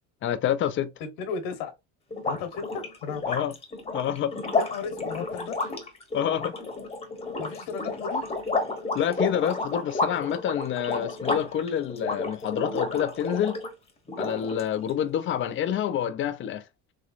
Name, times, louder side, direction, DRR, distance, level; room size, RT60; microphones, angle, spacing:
voice 1, 0.2-0.9 3.3-3.5 3.9-4.4 6.1-6.6 8.9-13.6 14.2-16.6, left 10 dB, 40° left, 0.5 m, -27 dB
voice 2, 1.0-1.7 2.3-3.4 4.6-5.8 7.4-8.3, left 6 dB, 85° left, 1.2 m, -35 dB
sound 1, 2.1-13.7 14.1-14.9, left 3 dB, 20° left, 1.0 m, -31 dB
3.6 x 3.0 x 2.5 m
cardioid pair, 110°, 32 cm